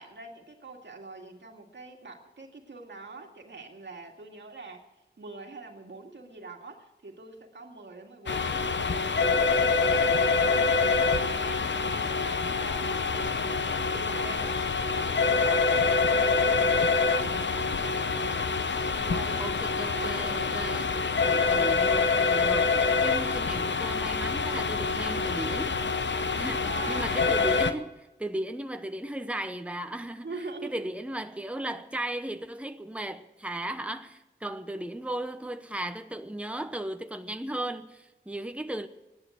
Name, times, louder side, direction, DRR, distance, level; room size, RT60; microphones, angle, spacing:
voice 1, 0.0-4.8 5.2-10.2 10.6-18.5 19.0-19.6 19.9-20.6 26.5-27.2 30.2-30.9, right 3 dB, 85° right, 2.2 m, -44 dB
sound 1, 8.3-27.7, left 4 dB, 90° left, 0.8 m, -26 dB
voice 2, 19.4-25.8 26.3-38.9, right 1 dB, 5° right, 1.0 m, -36 dB
16.5 x 11.0 x 7.9 m
wide cardioid pair, 55°, 18 cm